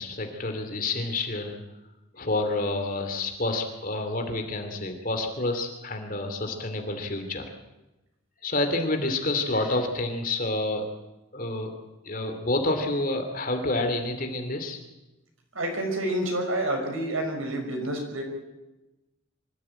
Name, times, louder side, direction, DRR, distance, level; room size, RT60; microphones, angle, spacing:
voice 1, 0.0-1.6 2.1-7.4 8.4-10.8 11.3-11.7 12.0-14.8, left 2 dB, 40° left, 5 dB, 2.7 m, -28 dB
voice 2, 15.5-18.2, right 1 dB, 80° right, 3 dB, 6.0 m, -28 dB
24.5 x 14.0 x 8.8 m, 1.0 s
head